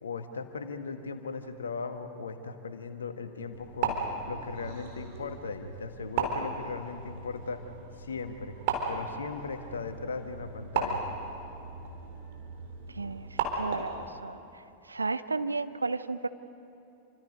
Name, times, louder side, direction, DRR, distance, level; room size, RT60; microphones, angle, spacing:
voice 1, 0.0-4.0 4.3-7.6 8.0-8.6 8.9-11.1, left 4 dB, 70° left, 8 dB, 1.6 m, -38 dB
sound 1, 3.5-14.1, right 4 dB, 50° right, 3.9 m, -36 dB
voice 2, 12.9-13.3 13.5-14.4 14.9-16.3, right 3 dB, 80° right, 13 dB, 0.7 m, -32 dB
28.0 x 25.5 x 5.3 m, 2.8 s
figure-of-eight pair, 90°, 0 cm